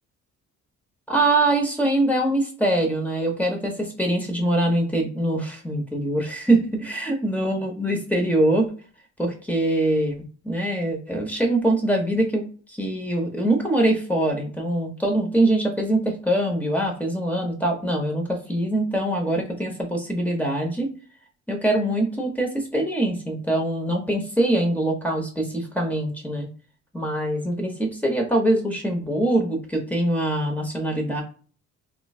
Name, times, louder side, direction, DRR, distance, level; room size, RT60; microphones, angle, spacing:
voice 1, 1.1-8.6 9.2-20.9 21.5-26.5 26.9-31.2, right 1 dB, 5° left, 1 dB, 0.9 m, -23 dB
3.1 x 2.3 x 2.4 m, 0.40 s
cardioid pair, 90°, 30 cm